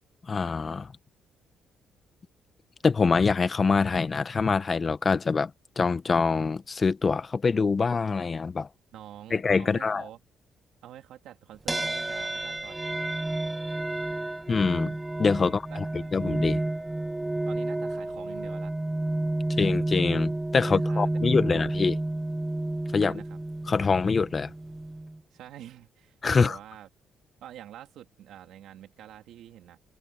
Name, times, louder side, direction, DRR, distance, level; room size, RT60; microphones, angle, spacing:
voice 1, 0.3-0.9 2.8-5.5 5.8-8.7 9.3-10.0 14.5-14.9 15.2-15.8 16.1-16.6 19.6-22.0 22.9-23.2 23.7-24.5 26.2-26.5, left 4 dB, 35° left, 1.2 m, -24 dB
voice 2, 8.9-10.2 10.8-12.9 13.6-13.8 15.4-16.2 17.5-18.7 20.6-21.5 23.0-23.4 25.3-26.9 27.4-29.8, right 11 dB, 80° right, 3.3 m, -47 dB
sound 1, 11.7-25.2, right 2 dB, 15° right, 0.8 m, -30 dB
cardioid pair, 90°, 0 cm